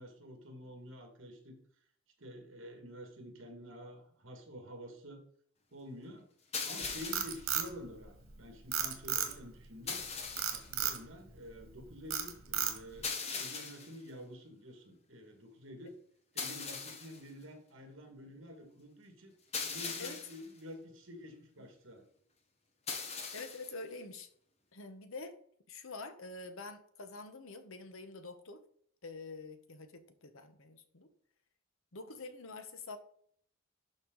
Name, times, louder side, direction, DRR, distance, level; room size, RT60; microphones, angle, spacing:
voice 1, 0.0-1.6 2.2-5.2 5.7-6.3 6.6-10.0 10.5-16.0 16.3-19.3 19.6-22.1, equal, 65° right, 4 dB, 2.1 m, -49 dB
sound 1, 6.5-7.5 9.9-10.7 13.0-14.0 16.4-17.2 19.5-20.5 22.9-23.7, left 5 dB, 30° left, 1.1 m, -40 dB
Frog, 6.8-8.3 8.7-9.6 10.4-11.0 11.5-11.8 12.1-13.0, right 9 dB, 85° right, 1.6 m, -34 dB
voice 2, 23.3-24.3 24.7-25.3 25.7-28.6 29.0-31.1 31.9-33.0, left 3 dB, 80° left, 8 dB, 1.1 m, -46 dB
12.0 x 4.6 x 4.0 m, 0.62 s
head